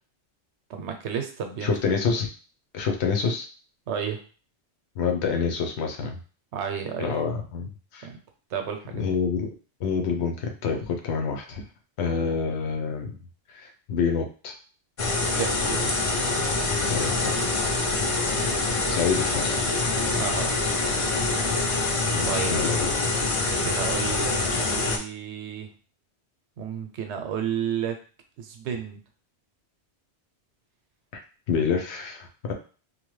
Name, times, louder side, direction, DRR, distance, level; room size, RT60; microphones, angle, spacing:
voice 1, 0.7-1.8 3.9-4.2 6.5-7.1 8.0-8.2 8.5-9.0 12.1-12.4 15.3-16.2 20.1-20.5 22.2-22.6 23.4-25.7 26.6-28.0 28.4-29.0 32.5-32.6, right 8 dB, 80° right, 5 dB, 0.9 m, -32 dB
voice 2, 1.6-2.3 2.7-3.5 5.0-6.2 7.0-8.1 8.9-9.5 9.8-11.6 12.0-13.1 13.5-14.5 16.8-17.2 18.9-19.6 22.1-22.8 31.5-32.5, left 5 dB, 75° left, 3 dB, 0.9 m, -27 dB
sound 1, 15.0-25.0, left 3 dB, 60° left, 0.3 m, -25 dB
2.9 x 2.2 x 3.0 m, 0.38 s
omnidirectional pair, 1.1 m